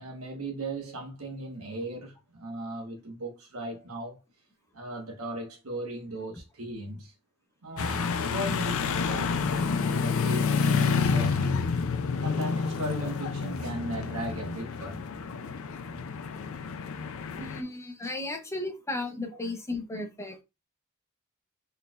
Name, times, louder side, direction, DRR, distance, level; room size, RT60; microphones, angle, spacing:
voice 1, 0.0-4.2 4.7-7.1 7.6-9.3 9.6-11.7 12.2-15.1, right 1 dB, 75° right, 1.3 m, -37 dB
sound 1, 7.8-17.6, left 5 dB, 70° left, 0.5 m, -29 dB
voice 2, 17.4-20.4, left 2 dB, 15° left, 0.7 m, -35 dB
4.0 x 3.2 x 2.4 m
head